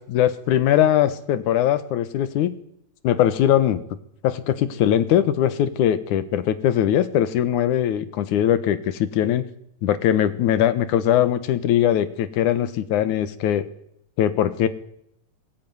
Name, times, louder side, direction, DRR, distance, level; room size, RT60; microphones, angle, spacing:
voice 1, 0.0-2.6 3.0-3.8 4.2-9.4 9.8-13.7 14.2-14.7, left 11 dB, 90° left, 13 dB, 2.7 m, -21 dB
22.0 x 13.5 x 9.4 m, 0.72 s
omnidirectional pair, 3.4 m